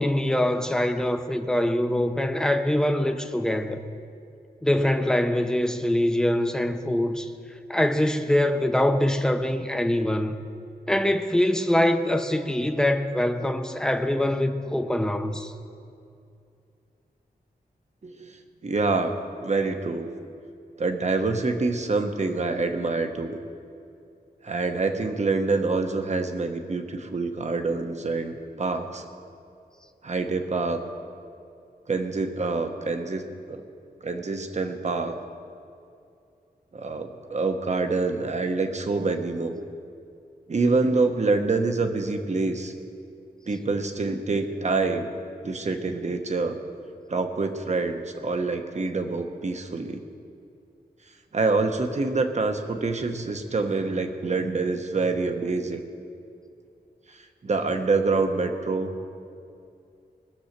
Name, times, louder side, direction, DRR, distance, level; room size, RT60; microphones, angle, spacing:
voice 1, 0.0-3.8 4.6-7.3 7.7-10.3 10.9-15.5, left 1 dB, 5° left, 0.7 m, -24 dB
voice 2, 18.0-19.1 19.4-20.1 20.8-23.4 24.4-29.0 30.0-30.8 31.9-33.6 34.0-35.2 36.7-39.6 40.5-42.7 43.5-45.1 45.4-46.6 47.1-50.0 51.3-55.8 57.1-58.9, right 3 dB, 45° right, 1.1 m, -26 dB
20.0 x 7.1 x 6.7 m
wide cardioid pair, 110°, 17 cm